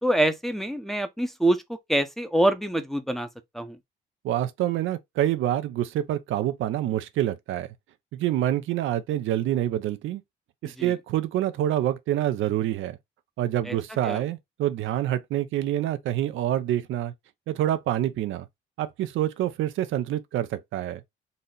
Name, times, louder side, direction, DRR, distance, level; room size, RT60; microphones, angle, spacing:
voice 1, 0.0-1.6 1.9-3.3 3.5-3.8 10.8-10.9 13.7-13.8 14.0-14.2, right 1 dB, ahead, 0.7 m, -25 dB
voice 2, 4.2-7.7 8.1-10.2 10.6-13.0 13.4-17.1 17.5-18.5 18.8-21.0, right 12 dB, 80° right, 0.6 m, -27 dB
4.0 x 2.0 x 3.7 m
cardioid pair, 90°, 20 cm